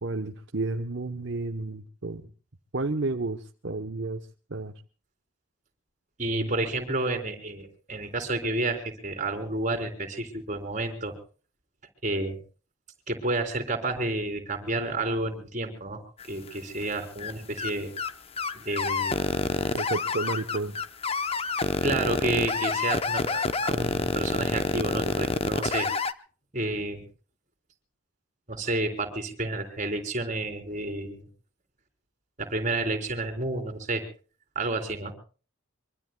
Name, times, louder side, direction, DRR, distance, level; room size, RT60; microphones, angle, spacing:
voice 1, 0.0-2.2 2.7-4.2 4.5-4.7 6.3-6.5 19.7-20.8, right 3 dB, 55° right, 5 dB, 0.9 m, -31 dB
voice 2, 6.2-11.1 12.0-12.4 13.1-16.0 16.3-17.9 18.5-19.2 21.8-25.9 26.5-27.0 28.5-31.2 32.4-34.0 34.6-35.1, right 2 dB, 35° right, 6 dB, 3.6 m, -30 dB
sound 1, 16.2-16.8 17.2-17.3 17.6-17.7 18.0-18.1 18.4-26.1, left 3 dB, 25° left, 0.7 m, -27 dB
25.0 x 24.0 x 2.2 m, 0.38 s
head